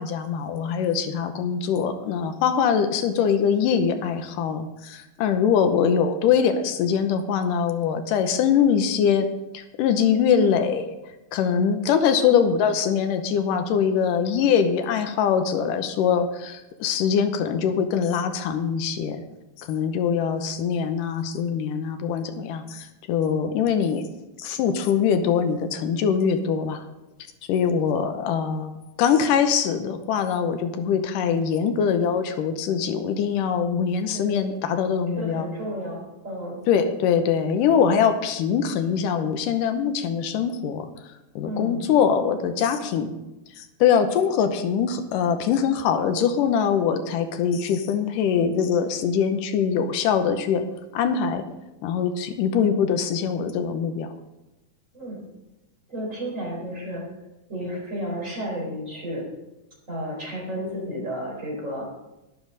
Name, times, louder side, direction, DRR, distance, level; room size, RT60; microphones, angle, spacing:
voice 1, 0.0-9.3 9.5-10.9 11.3-19.2 19.6-24.0 24.4-26.8 27.5-28.7 29.0-35.5 36.7-40.9 41.4-43.1 43.6-50.7 50.9-51.4 51.8-54.1, left 7 dB, 90° left, 8 dB, 2.5 m, -23 dB
voice 2, 34.1-34.7 35.1-36.6 41.4-41.8 54.9-55.2 55.9-57.0 57.5-59.2 59.9-61.8, equal, 20° right, -4 dB, 4.5 m, -32 dB
12.0 x 11.5 x 4.0 m, 0.99 s
omnidirectional pair, 3.7 m